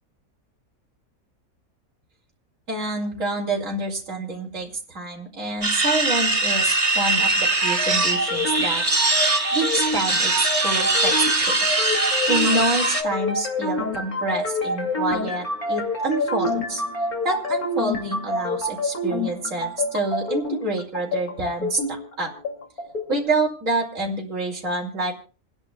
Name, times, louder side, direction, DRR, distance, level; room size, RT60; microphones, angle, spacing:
voice 1, 2.7-8.8 9.5-11.5 12.3-16.8 17.2-22.3 23.1-25.1, right 2 dB, 60° right, -2 dB, 3.1 m, -27 dB
sound 1, 5.6-13.0, right 2 dB, 25° right, 1.3 m, -22 dB
sound 2, 7.3-23.3, left 1 dB, 85° left, 3.2 m, -27 dB
29.0 x 10.5 x 2.3 m, 0.36 s
omnidirectional pair, 1.5 m